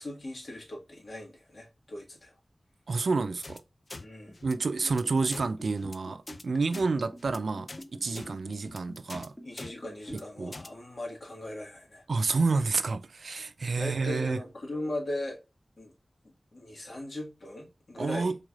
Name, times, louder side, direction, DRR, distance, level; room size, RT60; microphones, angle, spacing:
voice 1, 0.0-2.3 4.0-4.3 9.4-12.0 13.7-15.4 15.8-15.9 16.5-18.3, left 1 dB, 70° left, 1.6 m, -39 dB
voice 2, 2.9-3.6 4.4-9.3 10.1-10.5 12.1-14.4 18.0-18.4, right 4 dB, 85° right, 0.3 m, -29 dB
sound 1, 3.4-3.6 3.9-4.0 4.3-4.5 4.8-5.0 5.3-5.5 5.8-6.0 6.3-6.4 6.7-6.9 7.2-7.4 7.7-7.8 8.1-8.3 8.6-8.8 9.1-9.3 9.6-9.7 10.0-10.2 10.5-10.7, left 2 dB, 50° left, 0.4 m, -43 dB
Liquid, 4.2-10.4 10.7-10.8, equal, 15° left, 1.0 m, -47 dB
4.6 x 3.2 x 2.3 m
wide cardioid pair, 65°, 0 cm